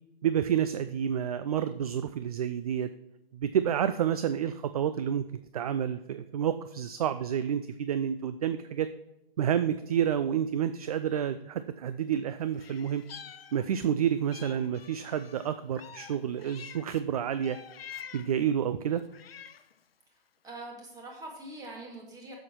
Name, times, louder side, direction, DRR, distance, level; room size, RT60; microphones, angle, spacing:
voice 1, 0.2-2.9 3.3-5.2 5.5-8.9 9.4-13.0 13.5-17.6 18.1-19.0, right 9 dB, 40° right, 11 dB, 0.4 m, -29 dB
Meow, 12.5-13.9 14.3-17.0 17.4-18.4 19.0-19.8, left 8 dB, 75° left, 0.7 m, -47 dB
voice 2, 20.4-22.3, right 2 dB, 10° right, -1 dB, 2.1 m, -43 dB
8.2 x 7.1 x 4.5 m, 0.87 s
hypercardioid pair, 135°, 30 cm